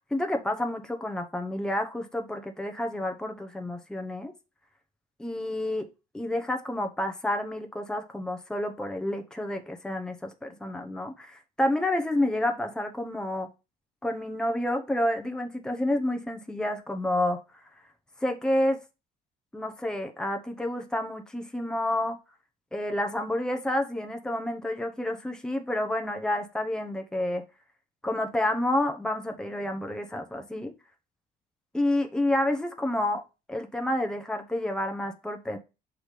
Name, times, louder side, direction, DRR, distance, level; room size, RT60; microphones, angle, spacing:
voice 1, 0.0-4.3 5.2-5.9 6.1-13.5 14.0-17.4 18.2-18.8 19.5-22.2 22.7-27.4 28.0-30.7 31.7-33.2 33.5-35.6, left 1 dB, 5° left, 0.9 m, -29 dB
6.0 x 3.3 x 5.1 m
cardioid pair, 110°, 17 cm